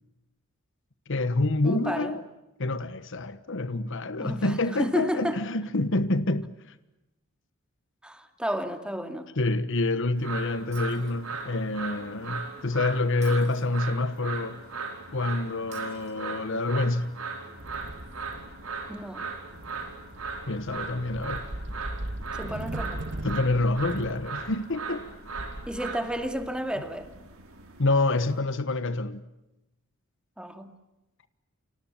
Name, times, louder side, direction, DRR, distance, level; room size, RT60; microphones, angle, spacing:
voice 1, 1.1-2.2 2.6-6.5 9.4-14.6 15.1-17.2 20.5-21.4 23.2-25.1 27.8-29.2, left 2 dB, 65° left, 1.3 m, -27 dB
voice 2, 1.6-2.2 4.2-5.4 8.0-9.3 18.9-19.2 22.4-23.0 25.7-27.1 30.4-30.7, equal, 5° right, 2.3 m, -32 dB
sound 1, 10.2-28.4, right 4 dB, 85° right, 5.2 m, -39 dB
Shatter, 10.7-11.7 13.2-14.2 15.7-16.7, right 7 dB, 35° right, 5.0 m, -54 dB
sound 2, 17.6-27.8, right 1 dB, 60° right, 1.7 m, -40 dB
29.5 x 26.5 x 7.3 m
head